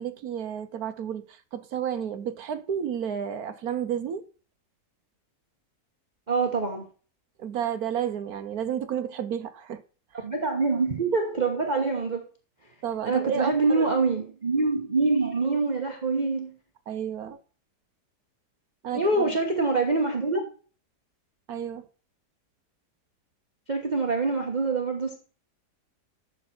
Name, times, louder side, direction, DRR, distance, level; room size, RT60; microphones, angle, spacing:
voice 1, 0.0-4.2 7.4-9.8 10.1-10.3 12.8-13.9 16.9-17.4 18.8-19.4 21.5-21.9, right 8 dB, 65° right, 1.3 m, -31 dB
voice 2, 6.3-6.9 10.2-12.2 13.0-16.5 18.9-20.5 23.7-25.2, right 3 dB, 25° right, 1.4 m, -25 dB
12.5 x 7.6 x 4.4 m
omnidirectional pair, 1.8 m